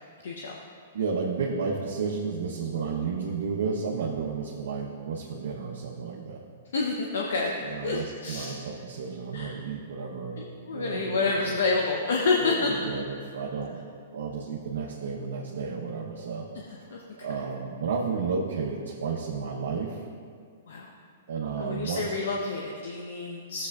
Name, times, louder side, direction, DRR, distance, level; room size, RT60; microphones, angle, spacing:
voice 1, 0.2-0.6 6.7-8.6 9.3-9.6 10.4-12.7 16.9-17.0 20.7-20.9 21.6-23.7, left 3 dB, 75° left, 0 dB, 0.7 m, -28 dB
voice 2, 0.9-6.4 7.6-10.4 10.7-11.6 12.4-13.8 14.1-16.5 16.8-16.9 17.2-20.0 21.3-22.1, right 5 dB, 75° right, -4 dB, 0.8 m, -32 dB
12.0 x 7.5 x 2.4 m, 2.1 s
hypercardioid pair, 125°, 0 cm